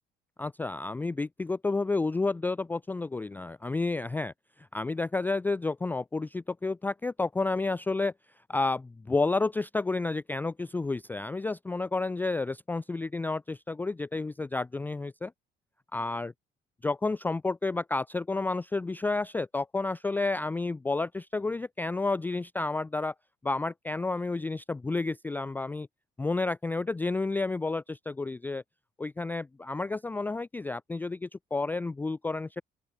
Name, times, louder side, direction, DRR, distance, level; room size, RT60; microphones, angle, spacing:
voice 1, 0.4-4.3 4.6-8.1 8.5-15.3 15.9-16.3 16.8-23.1 23.4-25.9 26.2-28.6 29.0-32.6, left 3 dB, 10° left, 0.3 m, -30 dB
open air
cardioid pair, 110°, 17 cm